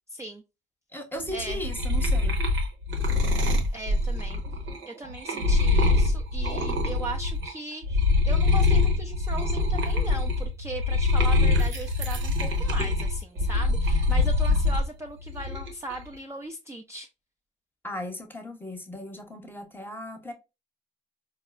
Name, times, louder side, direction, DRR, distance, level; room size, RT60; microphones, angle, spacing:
voice 1, 0.1-0.4 1.3-1.6 3.7-4.4 4.9-17.1, right 2 dB, 15° right, 0.4 m, -38 dB
voice 2, 0.9-2.4 17.8-20.3, left 1 dB, 10° left, 0.8 m, -36 dB
sound 1, 1.3-7.5 7.8-14.9 15.3-15.9, left 2 dB, 80° right, 0.9 m, -24 dB
4.4 x 2.0 x 2.4 m
cardioid pair, 90°, 20 cm